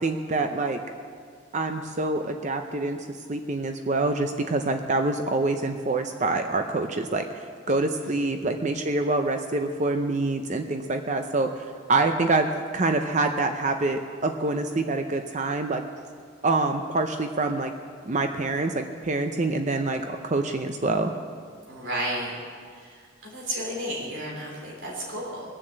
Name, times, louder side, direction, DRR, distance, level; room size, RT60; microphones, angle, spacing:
voice 1, 0.0-0.8 1.5-15.8 16.4-17.7 18.0-21.1, right 2 dB, 35° right, 6 dB, 0.6 m, -26 dB
voice 2, 7.7-8.2 21.7-22.3 22.7-25.4, right 1 dB, 65° right, -3 dB, 3.2 m, -33 dB
21.0 x 7.3 x 7.9 m, 2.1 s
head